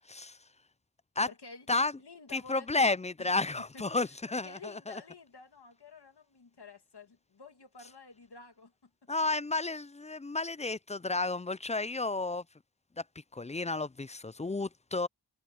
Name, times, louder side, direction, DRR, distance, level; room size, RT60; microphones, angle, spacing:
voice 1, 0.1-0.4 1.2-1.3 1.7-1.9 2.3-5.0 9.1-12.4 13.3-15.1, left 3 dB, 20° left, 0.3 m, -32 dB
voice 2, 1.3-1.7 2.0-3.3 3.7-4.2 4.4-8.7, left 4 dB, 65° left, 1.9 m, -51 dB
wide cardioid pair, 60°, 42 cm